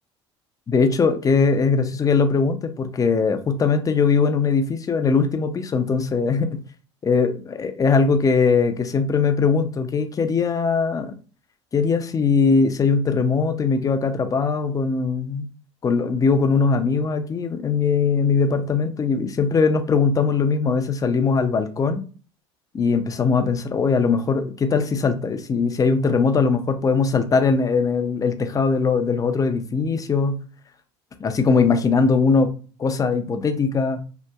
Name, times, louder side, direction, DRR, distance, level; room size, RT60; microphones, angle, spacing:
voice 1, 0.7-6.5 7.0-11.1 11.7-15.5 15.8-22.0 22.7-30.4 31.2-32.5 32.8-34.0, left 5 dB, 25° left, 0.4 m, -20 dB
2.7 x 2.1 x 2.2 m
hypercardioid pair, 70°, 15 cm